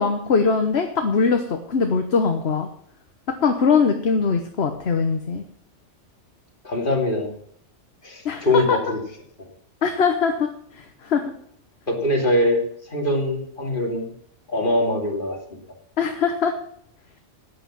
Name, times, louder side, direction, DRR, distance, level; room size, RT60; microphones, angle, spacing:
voice 1, 0.0-2.7 3.4-5.4 8.2-8.8 9.8-11.3 16.0-16.6, left 5 dB, 60° left, 6 dB, 1.4 m, -21 dB
voice 2, 6.6-7.3 8.0-9.0 9.4-9.5 11.9-14.1 14.5-15.6, left 1 dB, 45° left, 1 dB, 2.9 m, -23 dB
11.0 x 9.4 x 7.5 m, 0.64 s
omnidirectional pair, 1.3 m